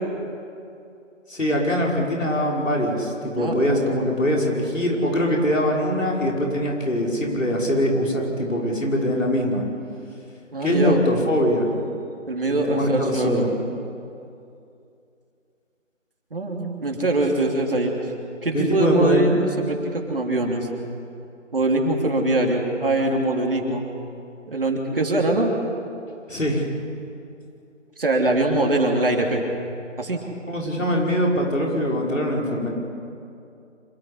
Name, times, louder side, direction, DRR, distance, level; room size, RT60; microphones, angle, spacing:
voice 1, 1.3-9.6 10.6-11.7 12.5-13.5 18.5-19.4 26.3-26.7 30.5-32.7, equal, 80° left, -2 dB, 5.8 m, -22 dB
voice 2, 10.5-11.0 12.3-13.5 16.3-17.9 18.4-20.7 21.5-23.8 24.5-25.5 28.0-29.4 30.0-30.2, right 2 dB, 45° right, 1 dB, 3.1 m, -22 dB
25.5 x 14.0 x 9.9 m, 2.6 s
figure-of-eight pair, 170°, 38 cm